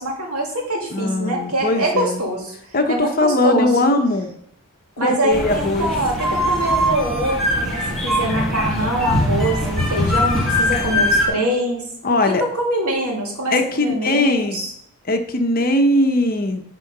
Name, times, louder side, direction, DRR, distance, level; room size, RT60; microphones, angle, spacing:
voice 1, 0.0-2.5 2.9-3.7 5.0-11.8 12.2-14.7, right 1 dB, 85° right, -1 dB, 2.4 m, -24 dB
voice 2, 0.9-2.2 2.7-4.3 5.0-5.9 12.0-12.4 13.5-14.7 15.1-16.6, left 2 dB, 40° left, 6 dB, 0.8 m, -19 dB
sound 1, 5.3-11.3, left 1 dB, ahead, 1.9 m, -21 dB
9.7 x 3.8 x 5.4 m, 0.73 s
head